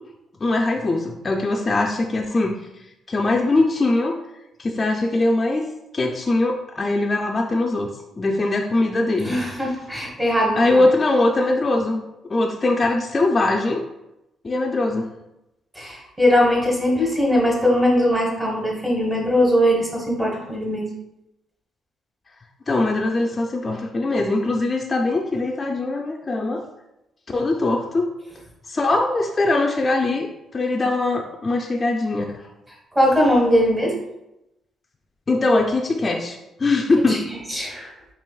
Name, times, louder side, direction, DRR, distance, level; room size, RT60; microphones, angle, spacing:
voice 1, 0.4-2.6 3.1-4.2 4.6-5.7 5.9-7.9 8.2-9.4 10.6-13.9 14.4-15.1 22.7-26.6 27.3-28.1 28.7-32.4 35.3-37.2, left 2 dB, 30° left, 0 dB, 0.4 m, -21 dB
voice 2, 9.2-10.8 15.7-20.9 32.9-33.9 37.1-37.9, equal, 15° right, -1 dB, 1.1 m, -20 dB
4.4 x 2.9 x 2.3 m, 0.90 s
cardioid pair, 90°, 0 cm